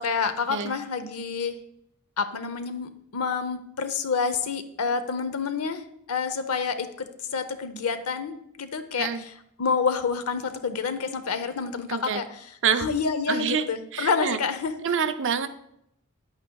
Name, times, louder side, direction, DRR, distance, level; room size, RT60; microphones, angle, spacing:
voice 1, 0.0-1.6 2.2-9.3 9.6-12.5 12.8-14.7, left 5 dB, 85° left, 10 dB, 0.7 m, -28 dB
voice 2, 11.9-12.2 12.6-12.9 13.3-13.6 13.9-14.4 14.8-15.5, right 7 dB, 60° right, 9 dB, 0.5 m, -26 dB
9.5 x 8.7 x 2.3 m, 0.75 s
head